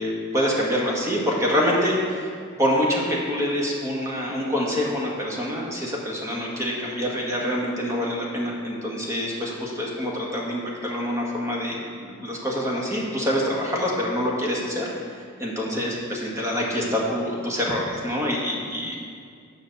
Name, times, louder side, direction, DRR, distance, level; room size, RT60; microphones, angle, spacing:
voice 1, 0.0-2.3 2.6-19.0, equal, 15° right, -3 dB, 1.7 m, -26 dB
9.5 x 5.8 x 6.6 m, 2.2 s
head